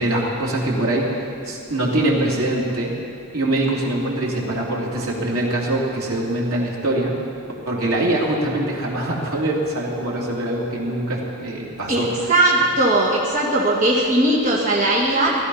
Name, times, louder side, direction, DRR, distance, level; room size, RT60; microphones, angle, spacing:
voice 1, 0.0-2.9 3.3-7.2 7.6-12.3, right 1 dB, 80° right, -4 dB, 3.2 m, -23 dB
voice 2, 11.9-15.4, right 1 dB, 35° right, -5 dB, 1.9 m, -19 dB
17.5 x 13.5 x 5.7 m, 2.5 s
head